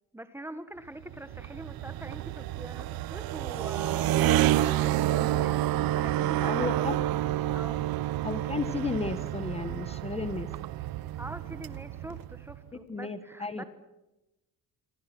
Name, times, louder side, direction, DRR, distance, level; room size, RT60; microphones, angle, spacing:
voice 1, 0.1-4.1 4.6-6.9 7.2-7.9 11.2-13.6, right 1 dB, 5° right, 11 dB, 1.5 m, -44 dB
sound 1, 1.0-12.6, right 14 dB, 70° right, 1.1 m, -29 dB
voice 2, 6.4-7.0 8.2-10.5 12.7-13.6, left 4 dB, 15° left, 11 dB, 1.4 m, -33 dB
28.5 x 26.0 x 6.1 m, 0.96 s
cardioid pair, 175°, 37 cm